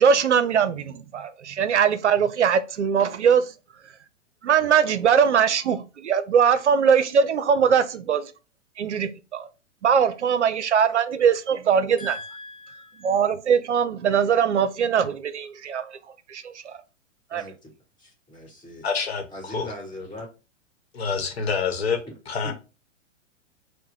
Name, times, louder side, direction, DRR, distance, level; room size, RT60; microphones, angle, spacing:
voice 1, 0.0-3.5 4.4-8.3 8.8-9.5 9.8-12.2 13.0-16.0 16.3-16.8 17.3-17.5, right 7 dB, 65° right, 0.6 m, -21 dB
voice 2, 12.0-13.1 17.3-17.7 18.0-18.9 19.3-20.3 22.4-22.5, left 1 dB, 10° left, 1.7 m, -40 dB
voice 3, 18.8-19.7 20.9-22.0 22.3-22.5, left 5 dB, 55° left, 1.0 m, -27 dB
4.6 x 2.2 x 4.6 m
figure-of-eight pair, 110°, 37 cm